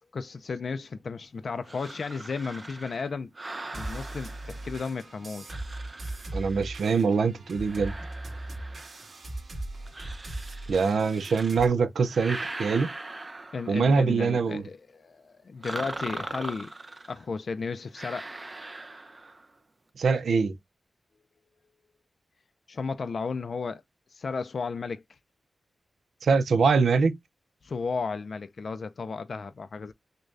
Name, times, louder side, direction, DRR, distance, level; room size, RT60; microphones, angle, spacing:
voice 1, 0.1-3.3 3.7-5.6 13.5-16.7 17.1-18.3 22.7-23.8 24.1-25.2 27.6-29.9, left 4 dB, 60° left, 0.4 m, -34 dB
sound 1, 1.7-5.0 5.5-7.0 7.6-9.2 9.9-11.7 12.0-14.0 15.6-17.2 17.9-19.5, right 2 dB, 30° right, 0.6 m, -41 dB
sound 2, 3.7-11.7, right 1 dB, 55° right, 2.1 m, -39 dB
voice 2, 6.3-7.9 10.7-12.9 13.7-14.6 20.0-20.6 26.2-27.2, right 5 dB, 90° right, 0.6 m, -23 dB
6.4 x 2.2 x 2.5 m
wide cardioid pair, 100°, 0 cm